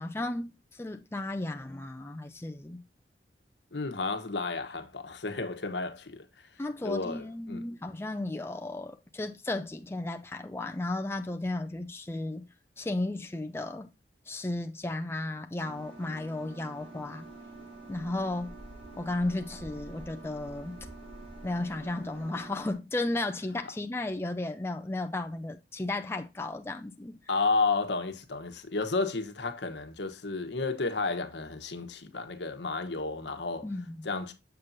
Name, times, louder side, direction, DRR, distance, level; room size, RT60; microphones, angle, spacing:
voice 1, 0.0-2.8 6.6-12.5 12.8-13.9 14.3-17.3 17.9-18.5 19.0-20.8 21.4-27.2 33.6-34.1, left 2 dB, 15° left, 0.4 m, -34 dB
voice 2, 3.7-6.5 6.8-7.7 27.3-33.7 34.0-34.3, left 3 dB, 75° left, 1.1 m, -32 dB
sound 1, 15.6-22.7, right 2 dB, 40° right, 3.7 m, -47 dB
7.1 x 6.6 x 2.6 m
head